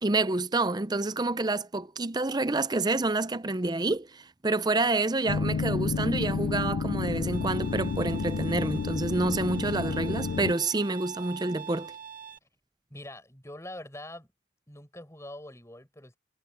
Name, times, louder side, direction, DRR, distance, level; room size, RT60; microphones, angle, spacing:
voice 1, 0.0-11.9, right 2 dB, 20° right, 0.6 m, -28 dB
sound 1, 5.3-10.5, left 4 dB, 70° left, 0.4 m, -30 dB
Bowed string instrument, 7.3-12.4, right 8 dB, 45° right, 1.2 m, -44 dB
voice 2, 12.9-14.3 14.7-16.2, left 1 dB, 15° left, 5.4 m, -44 dB
head